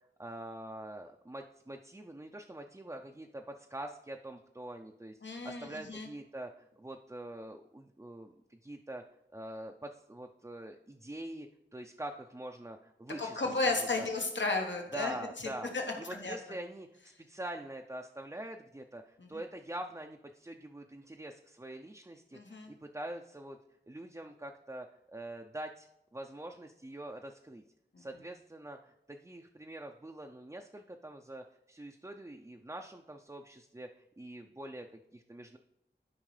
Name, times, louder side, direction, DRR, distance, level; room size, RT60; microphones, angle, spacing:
voice 1, 0.2-9.0 9.3-13.4 13.8-14.1 14.9-15.7 16.0-23.6 23.9-25.9 26.1-27.6 28.0-35.6, right 1 dB, 15° right, 3 dB, 0.5 m, -45 dB
voice 2, 5.2-6.1 13.2-15.8 16.2-16.4 19.2-19.4 22.3-22.7 27.9-28.0, left 3 dB, 80° left, 2 dB, 1.3 m, -34 dB
12.5 x 5.2 x 3.3 m, 0.87 s
wide cardioid pair, 45°, 19 cm